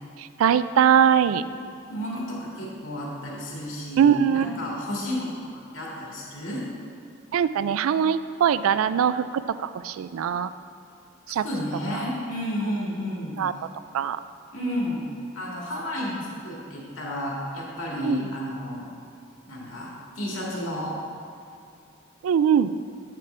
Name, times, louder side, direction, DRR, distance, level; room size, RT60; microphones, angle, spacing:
voice 1, 0.2-1.4 4.0-4.5 7.3-10.5 11.3-11.4 13.4-13.5 13.9-14.2 18.0-18.3 22.2-22.7, right 8 dB, 90° right, 14 dB, 0.3 m, -21 dB
voice 2, 1.9-5.3 5.7-6.6 11.4-13.4 14.5-15.0 15.3-18.9 19.5-19.9 20.2-20.9, equal, 80° left, -4 dB, 2.0 m, -31 dB
8.8 x 7.5 x 3.3 m, 2.4 s
head